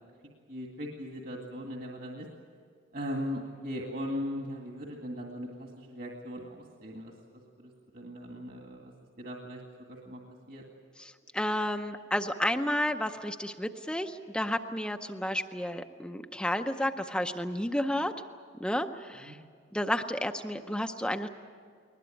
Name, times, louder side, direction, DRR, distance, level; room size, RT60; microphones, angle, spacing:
voice 1, 0.5-2.3 2.9-7.1 7.6-8.9 9.2-9.6 9.9-10.2 10.5-10.6 19.2-19.4, equal, 55° right, 1 dB, 2.1 m, -38 dB
voice 2, 11.0-18.1 18.6-19.4 19.7-21.3, left 1 dB, 5° left, 6 dB, 0.6 m, -31 dB
21.0 x 20.0 x 9.2 m, 2.1 s
head